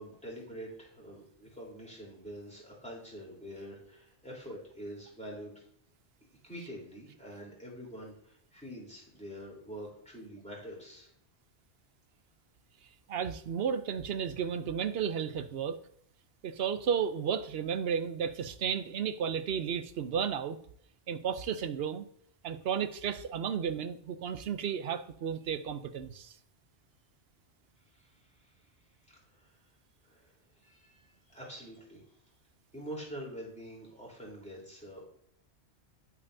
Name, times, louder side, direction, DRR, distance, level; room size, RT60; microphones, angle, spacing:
voice 1, 0.0-5.5 6.4-11.1 27.9-28.1 29.1-29.5 30.0-30.3 30.6-32.0 32.7-35.1, equal, 5° left, -4 dB, 3.4 m, -45 dB
voice 2, 13.1-15.8 16.4-20.6 21.1-22.1 22.4-26.4, right 7 dB, 65° right, 11 dB, 0.8 m, -33 dB
9.4 x 8.7 x 2.7 m, 0.67 s
omnidirectional pair, 1.1 m